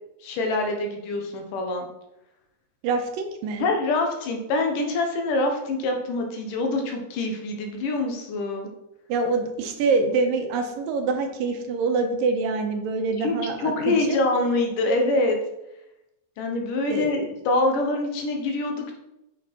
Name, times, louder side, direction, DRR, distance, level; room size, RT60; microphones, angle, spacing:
voice 1, 0.2-1.9 3.6-8.7 13.2-15.4 16.4-19.0, left 2 dB, 70° left, 3 dB, 2.5 m, -25 dB
voice 2, 2.8-3.6 9.1-14.2 16.9-17.1, right 4 dB, 80° right, 4 dB, 2.6 m, -25 dB
8.8 x 6.1 x 4.2 m, 0.90 s
omnidirectional pair, 4.1 m